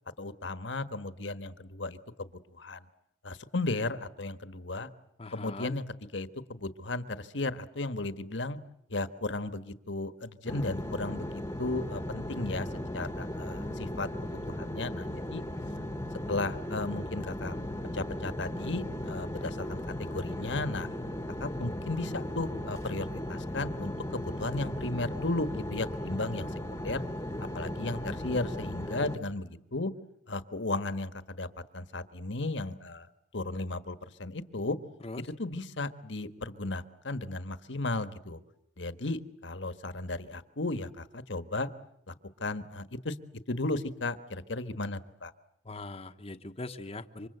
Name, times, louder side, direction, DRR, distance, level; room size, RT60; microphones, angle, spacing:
voice 1, 0.2-2.9 3.2-4.9 5.3-8.6 8.9-12.7 12.9-15.4 16.3-17.6 17.9-20.9 21.4-27.0 27.5-29.9 30.3-31.5 31.7-33.1 33.3-34.8 35.2-38.4 38.8-41.7 42.1-42.2 42.4-43.1 43.5-45.3, left 2 dB, 70° left, 11 dB, 1.4 m, -35 dB
voice 2, 5.2-5.8 35.0-35.2 45.6-47.3, left 2 dB, 30° left, 6 dB, 1.1 m, -41 dB
sound 1, 10.5-29.2, left 1 dB, 15° left, 1.3 m, -37 dB
28.0 x 25.5 x 7.9 m, 0.76 s
head